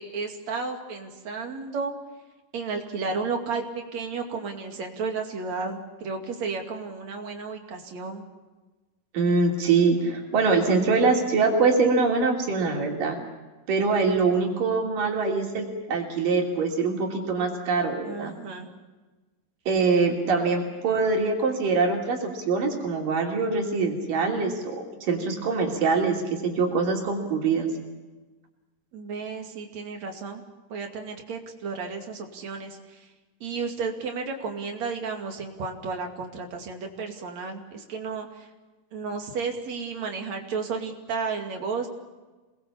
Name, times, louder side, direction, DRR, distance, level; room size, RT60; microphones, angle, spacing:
voice 1, 0.0-1.9 2.5-3.6 3.9-8.2 18.0-18.7 20.2-20.4 28.9-30.4 30.7-33.1 33.4-38.5 38.9-41.9, right 4 dB, 55° right, 3 dB, 3.6 m, -33 dB
voice 2, 9.1-13.2 13.7-18.3 19.7-27.7, right 4 dB, 85° right, 1 dB, 4.7 m, -24 dB
27.0 x 20.5 x 7.2 m, 1.2 s
omnidirectional pair, 3.8 m